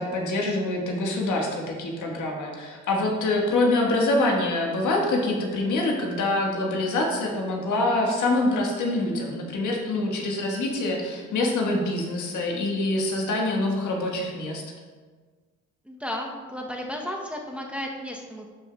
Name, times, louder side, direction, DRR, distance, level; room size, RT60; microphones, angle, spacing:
voice 1, 0.0-14.6, left 2 dB, 75° left, 0 dB, 1.5 m, -25 dB
voice 2, 15.8-18.6, equal, 5° right, -1 dB, 0.8 m, -34 dB
12.0 x 5.0 x 2.3 m, 1.5 s
cardioid pair, 90°, 30 cm